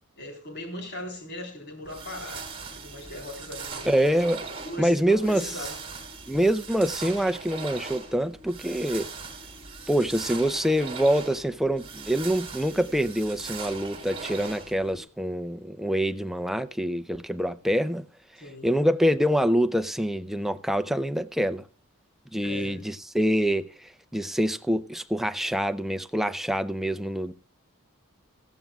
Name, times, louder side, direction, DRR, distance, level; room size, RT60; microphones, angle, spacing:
voice 1, 0.2-2.5 2.8-4.0 4.6-5.8 18.4-18.7 22.4-22.8, left 1 dB, 50° left, 3.8 m, -39 dB
sound 1, 1.8-15.0, right 4 dB, 25° right, 3.0 m, -40 dB
voice 2, 3.9-4.4 4.8-5.5 6.3-9.1 9.9-18.1 18.6-21.7 22.3-27.3, equal, ahead, 0.5 m, -25 dB
17.5 x 14.5 x 2.3 m
head